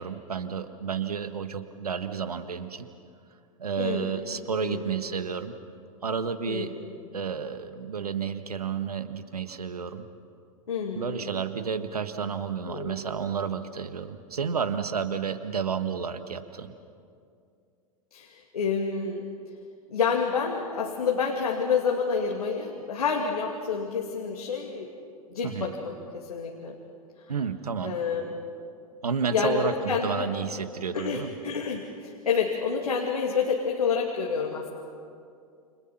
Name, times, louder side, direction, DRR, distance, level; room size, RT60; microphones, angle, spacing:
voice 1, 0.0-2.9 3.6-5.5 6.0-6.7 7.1-10.1 10.9-16.7 25.4-25.7 27.3-28.0 29.0-31.3, right 6 dB, 80° right, 10 dB, 1.5 m, -31 dB
voice 2, 3.8-4.3 4.6-4.9 6.5-6.9 10.7-11.3 12.7-13.1 18.1-19.2 19.9-24.9 25.3-26.8 27.8-28.4 29.3-30.4 30.9-34.7, left 6 dB, 80° left, 0 dB, 2.4 m, -29 dB
29.0 x 26.0 x 5.9 m, 2.4 s
figure-of-eight pair, 95°, 19 cm